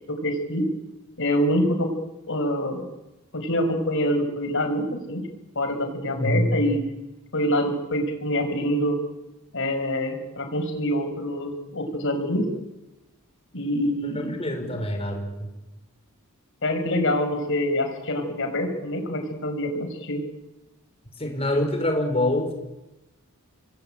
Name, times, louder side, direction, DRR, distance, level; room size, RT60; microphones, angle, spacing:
voice 1, 0.1-0.7 1.2-1.9 2.3-2.8 3.3-5.3 5.6-6.8 7.3-9.0 9.5-12.5 13.5-14.8 16.6-20.2, equal, 60° left, 5 dB, 5.8 m, -25 dB
voice 2, 6.1-6.5 14.2-15.5 21.2-22.5, left 1 dB, 30° left, 5 dB, 5.4 m, -25 dB
27.0 x 21.5 x 9.0 m, 0.99 s
head